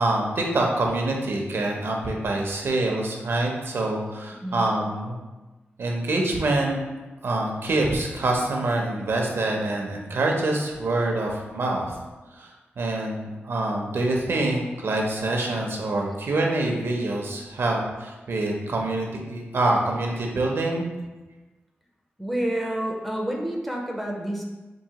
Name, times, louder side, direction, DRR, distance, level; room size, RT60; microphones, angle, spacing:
voice 1, 0.0-5.2 5.8-6.8 7.2-11.9 12.3-20.8, right 2 dB, 65° right, 0 dB, 0.6 m, -25 dB
voice 2, 22.2-24.4, right 1 dB, ahead, -1 dB, 0.4 m, -28 dB
4.6 x 2.6 x 2.8 m, 1.2 s
wide cardioid pair, 160°, 4 cm